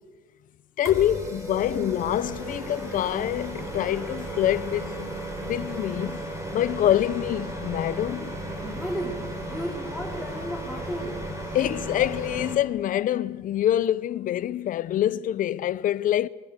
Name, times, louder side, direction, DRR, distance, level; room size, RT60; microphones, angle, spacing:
voice 1, 0.8-5.1 5.4-8.4 11.5-16.3, left 12 dB, 55° left, 0.6 m, -26 dB
sound 1, 0.8-12.5, right 1 dB, 15° right, 5.3 m, -35 dB
voice 2, 8.6-11.2, equal, ahead, 3.3 m, -34 dB
21.5 x 20.0 x 6.7 m
cardioid pair, 110°, 17 cm